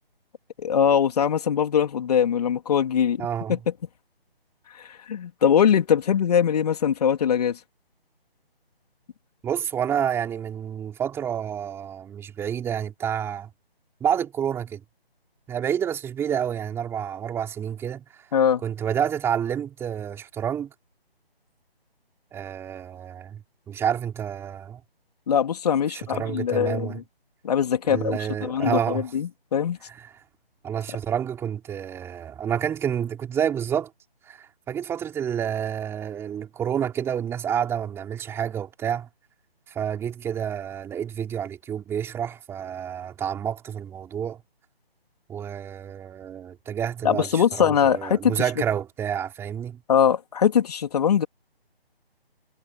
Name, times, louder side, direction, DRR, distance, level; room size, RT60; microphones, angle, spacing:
voice 1, 0.6-3.6 4.7-7.6 18.3-18.6 25.3-27.0 27.4-29.8 47.0-48.4 49.9-51.3, left 8 dB, 40° left, 3.4 m, -22 dB
voice 2, 3.2-3.6 9.4-13.5 14.0-14.8 15.5-18.0 18.6-20.7 22.3-24.8 25.9-27.0 27.9-29.1 30.6-33.9 34.3-39.1 39.7-44.4 45.3-49.8, right 9 dB, 10° right, 4.4 m, -29 dB
figure-of-eight pair, 155°, 31 cm